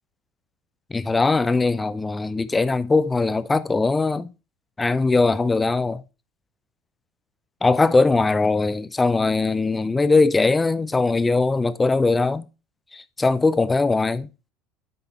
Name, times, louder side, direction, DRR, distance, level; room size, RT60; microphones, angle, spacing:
voice 1, 0.9-4.3 4.8-6.0 7.6-12.5 12.9-14.3, left 3 dB, 15° left, 0.6 m, -20 dB
9.2 x 4.0 x 4.1 m
hypercardioid pair, 75°, 0 cm